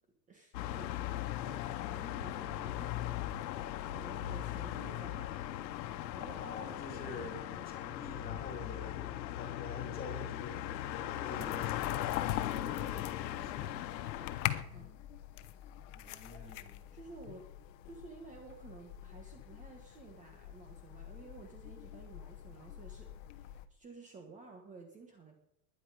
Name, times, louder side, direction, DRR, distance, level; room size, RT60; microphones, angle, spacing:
voice 1, 0.3-6.6 6.9-7.9 12.5-14.9 16.0-17.5 17.8-25.3, right 4 dB, 15° right, 3 dB, 1.5 m, -54 dB
sound 1, 0.5-14.6, left 13 dB, 90° left, 1.3 m, -38 dB
voice 2, 6.4-7.4 7.7-12.6 13.4-13.8 15.9-16.8, left 3 dB, 15° left, 1 dB, 2.7 m, -47 dB
sound 2, 11.4-23.7, left 14 dB, 45° left, 1.0 m, -44 dB
21.0 x 10.0 x 5.0 m, 0.80 s
supercardioid pair, 170°, 50 cm